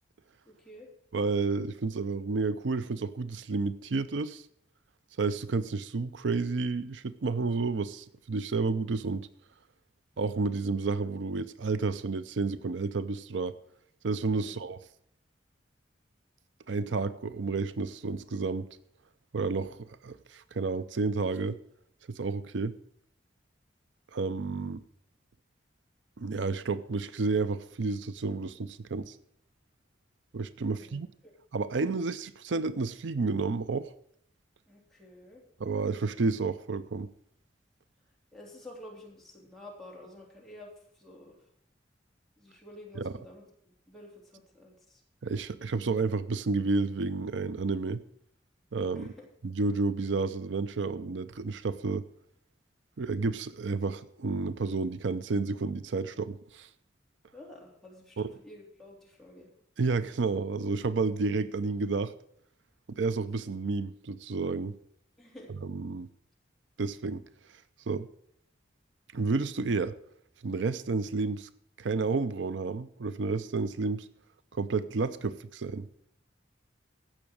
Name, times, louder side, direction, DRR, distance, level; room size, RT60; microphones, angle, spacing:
voice 1, 0.5-0.9 14.3-14.6 30.7-31.3 34.7-35.4 38.3-41.4 42.4-45.0 48.9-49.3 57.3-59.5 65.2-65.5, left 1 dB, ahead, 3.4 m, -50 dB
voice 2, 1.1-4.5 5.2-9.3 10.2-13.5 14.0-14.8 16.7-18.7 19.3-21.6 22.1-22.8 24.1-24.8 26.2-29.2 30.3-31.1 31.5-33.9 35.6-37.1 43.0-43.1 45.2-48.0 48.7-49.1 49.4-52.0 53.0-56.7 58.2-58.3 59.8-62.1 62.9-64.7 65.6-66.1 66.8-67.2 67.9-68.1 69.1-70.0 70.4-71.5 71.8-74.1 74.5-75.9, right 4 dB, 80° right, 0.6 m, -31 dB
15.5 x 6.2 x 6.3 m
head